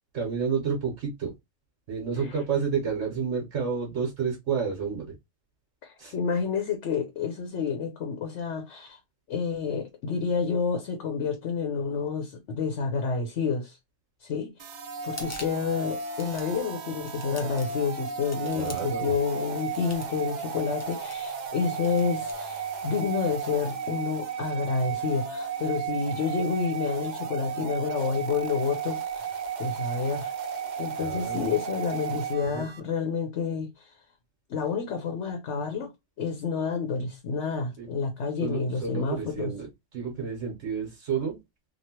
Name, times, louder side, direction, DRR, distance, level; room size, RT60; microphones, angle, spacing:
voice 1, 0.1-1.3 1.9-5.1 6.0-6.1 18.5-19.1 31.0-31.4 32.4-32.7 37.8-37.9 38.4-41.4, right 6 dB, 65° right, 1.2 m, -30 dB
voice 2, 5.8-9.0 9.3-13.8 14.2-14.5 15.0-30.3 30.8-34.0 34.5-35.9 36.2-39.5, left 5 dB, 65° left, 1.0 m, -29 dB
sound 1, 14.6-32.8, right 7 dB, 90° right, 0.4 m, -34 dB
sound 2, 15.0-15.7 16.0-16.6 17.1-17.8 18.3-19.0 19.6-20.2 20.8-21.5 21.8-22.4, left 2 dB, 20° left, 0.4 m, -45 dB
3.1 x 2.4 x 2.8 m
omnidirectional pair, 1.4 m